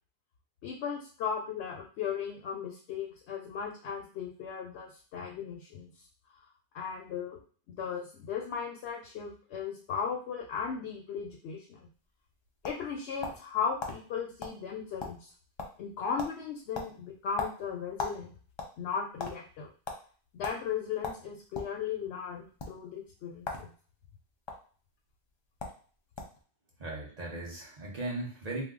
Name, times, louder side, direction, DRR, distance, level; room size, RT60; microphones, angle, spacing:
voice 1, 0.6-5.9 6.7-7.4 7.7-11.9 12.6-15.3 15.8-18.3 18.8-19.7 20.3-23.7, left 6 dB, 75° left, 1 dB, 0.9 m, -36 dB
sound 1, 12.1-13.5 13.8-14.0 14.4-14.6 14.8-15.3 15.6-15.9 16.2-16.4 16.7-18.2 18.5-19.3 19.8-20.0 20.4-20.6 21.0-21.7 22.5-22.7 23.4-23.7 24.0-24.5 25.3-25.4 25.6-25.8 26.2-26.4, left 4 dB, 45° left, 0.3 m, -37 dB
voice 2, 26.8-28.6, right 2 dB, 40° right, -2 dB, 1.0 m, -37 dB
2.8 x 2.1 x 3.6 m, 0.42 s
omnidirectional pair, 1.2 m